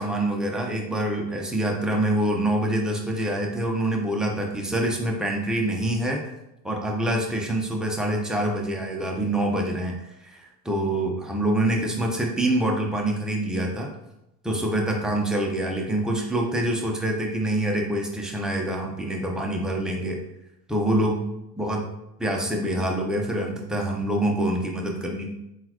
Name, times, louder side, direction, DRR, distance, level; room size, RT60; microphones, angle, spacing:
voice 1, 0.0-6.2 6.6-10.0 10.3-13.9 14.4-20.2 20.7-21.2 21.5-21.8 22.2-25.3, right 1 dB, ahead, 0 dB, 0.5 m, -25 dB
3.7 x 2.4 x 2.9 m, 0.88 s
hypercardioid pair, 90°, 47 cm